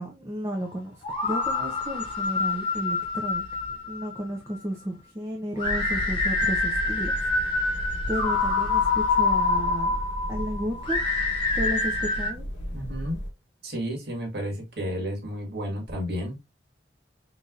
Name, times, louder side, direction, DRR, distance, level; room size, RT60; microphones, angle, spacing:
voice 1, 0.0-3.5 3.9-7.1 8.1-10.0 10.3-11.0 11.5-12.4, equal, 15° right, 0.6 m, -33 dB
sound 1, 1.0-4.2 5.6-12.3, left 3 dB, 30° left, 1.1 m, -26 dB
sound 2, 5.6-13.3, equal, 80° left, 1.0 m, -36 dB
voice 2, 12.7-13.2 13.6-16.4, equal, 60° right, 1.7 m, -32 dB
4.0 x 3.2 x 2.4 m
head